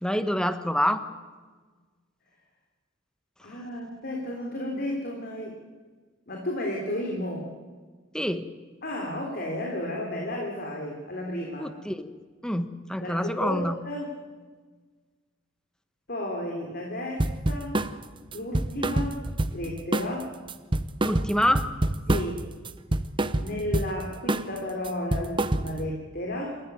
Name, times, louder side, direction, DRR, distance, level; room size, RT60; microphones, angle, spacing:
voice 1, 0.0-1.0 8.1-8.5 11.6-12.1 12.4-13.8 21.0-21.7, equal, 5° left, 10 dB, 1.1 m, -26 dB
voice 2, 3.4-5.6 6.3-7.5 8.8-11.7 13.0-14.1 16.1-17.8 18.3-19.2 19.5-20.3 22.1-22.4 23.4-26.6, left 1 dB, 50° left, 0 dB, 3.5 m, -33 dB
sound 1, 17.2-17.9 18.3-19.7 19.9-20.2 20.5-22.4 22.7-23.9 24.3-24.6 24.8-25.9, right 1 dB, 25° right, 0.8 m, -26 dB
27.5 x 14.0 x 9.3 m, 1.4 s
head